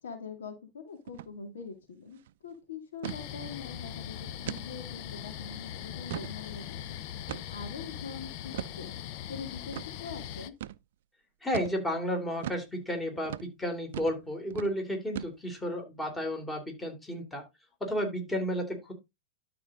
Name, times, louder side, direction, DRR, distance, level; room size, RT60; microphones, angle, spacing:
voice 1, 0.0-6.8 7.5-8.9 9.3-10.5, left 5 dB, 75° left, 5 dB, 2.3 m, -43 dB
sound 1, 1.1-1.3 1.6-1.7 2.1-2.3 3.0-3.2 3.7-3.8 4.5-4.7 5.2-5.3 5.8-6.4 7.3-7.7 8.5-8.8 9.7-9.9 10.6-10.8 11.5-11.8 12.4-12.7 13.2-13.5 13.9-14.2 14.5-14.7 15.1-15.6, right 12 dB, 65° right, 0.4 m, -38 dB
sound 2, 3.0-10.5, left 11 dB, 50° left, 0.7 m, -41 dB
voice 2, 11.4-17.4 17.8-18.9, equal, 10° left, 4 dB, 3.1 m, -32 dB
12.0 x 4.3 x 3.8 m, 0.23 s
hypercardioid pair, 105°, 0 cm